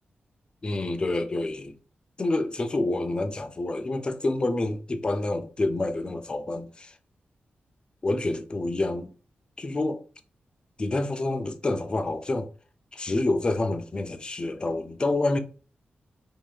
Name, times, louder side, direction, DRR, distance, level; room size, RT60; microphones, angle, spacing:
voice 1, 0.6-1.7 2.2-6.9 8.0-9.1 9.6-10.0 10.8-12.5 12.9-15.4, left 2 dB, 25° left, 0.3 m, -28 dB
2.7 x 2.1 x 3.2 m
wide cardioid pair, 140°, 4 cm